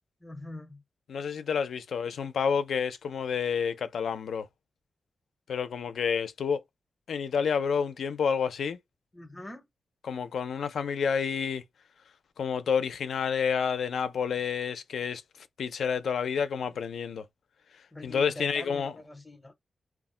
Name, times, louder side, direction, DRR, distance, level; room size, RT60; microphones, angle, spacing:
voice 1, 0.2-0.8 9.1-9.6 17.9-19.5, left 1 dB, 15° left, 0.5 m, -44 dB
voice 2, 1.1-4.5 5.5-6.6 7.1-8.8 10.0-11.6 12.4-17.3 18.0-19.0, left 6 dB, 85° left, 0.4 m, -29 dB
2.3 x 2.1 x 3.6 m
wide cardioid pair, 175°, 0 cm